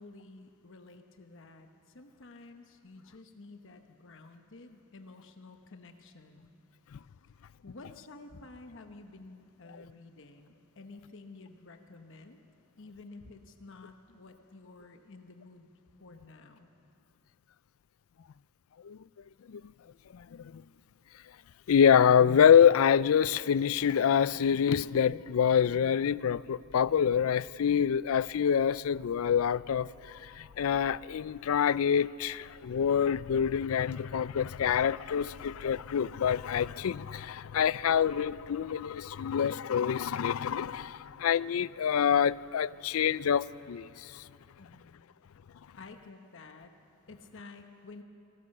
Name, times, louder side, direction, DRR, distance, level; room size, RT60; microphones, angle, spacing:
voice 1, 0.0-6.5 7.2-7.3 7.6-12.4 12.8-15.7 16.0-16.7 44.6-45.0 45.8-46.7 47.1-48.0, left 3 dB, 65° left, 1.1 m, -51 dB
voice 2, 20.1-20.6 21.7-44.3, left 8 dB, 85° left, 0.4 m, -26 dB
27.0 x 17.5 x 6.6 m
head